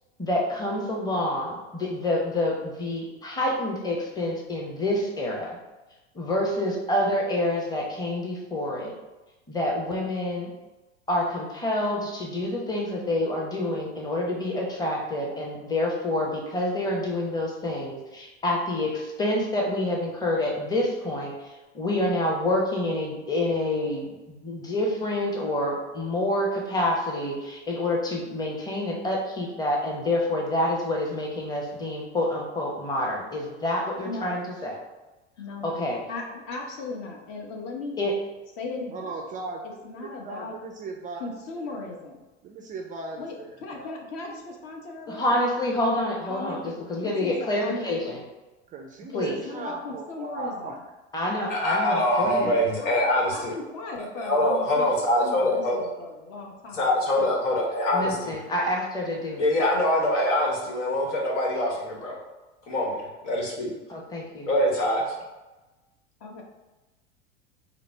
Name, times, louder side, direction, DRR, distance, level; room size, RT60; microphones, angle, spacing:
voice 1, 0.2-5.6 6.1-8.9 9.5-10.5 11.1-21.3 21.7-34.7 35.6-36.0 38.0-38.1 45.1-48.2 49.1-49.4 51.1-52.5 57.9-59.5 63.9-64.5, left 1 dB, 10° left, -1 dB, 0.8 m, -27 dB
voice 2, 34.0-34.4 35.4-38.2 38.6-39.1 39.8-40.6 41.2-42.2 43.2-45.4 46.2-48.2 49.1-50.7 52.4-57.3 66.2-66.4, left 3 dB, 50° left, 1 dB, 1.0 m, -37 dB
voice 3, 38.9-41.3 41.6-41.7 42.4-43.9 48.7-50.8, right 3 dB, 25° right, 2 dB, 0.3 m, -37 dB
voice 4, 51.5-53.5 54.2-55.8 56.7-58.4 59.4-62.2 62.7-63.7 64.5-65.0, left 1 dB, 80° left, -1 dB, 1.2 m, -24 dB
3.9 x 2.0 x 4.4 m, 1.1 s
hypercardioid pair, 95°, 36 cm